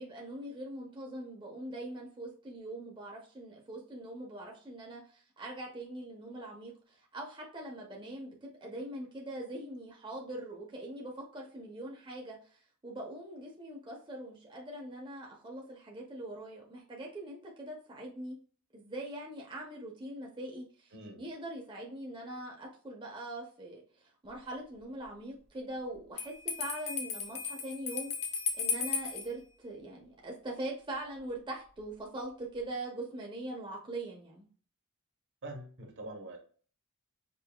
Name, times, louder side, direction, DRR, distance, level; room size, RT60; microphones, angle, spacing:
voice 1, 0.0-5.0 5.4-12.4 12.8-18.4 18.7-20.9 21.2-23.8 24.2-28.1 28.6-34.5, right 1 dB, 20° right, -2 dB, 0.7 m, -42 dB
voice 2, 20.9-21.3 35.4-36.4, right 1 dB, 55° right, 3 dB, 0.9 m, -44 dB
Bell, 26.2-29.3, left 5 dB, 30° left, 0.6 m, -35 dB
5.3 x 2.6 x 2.3 m, 0.42 s
head